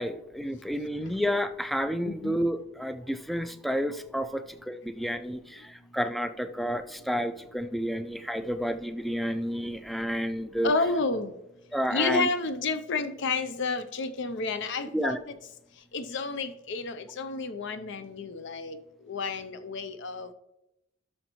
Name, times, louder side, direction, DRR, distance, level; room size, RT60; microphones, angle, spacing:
voice 1, 0.0-10.7 11.7-12.3 14.9-15.2, equal, ahead, 11 dB, 0.3 m, -30 dB
voice 2, 2.0-2.4 10.6-11.3 11.9-15.2 15.9-18.8 19.1-20.3, left 3 dB, 60° left, 10 dB, 0.6 m, -30 dB
12.0 x 6.4 x 3.0 m, 0.92 s
head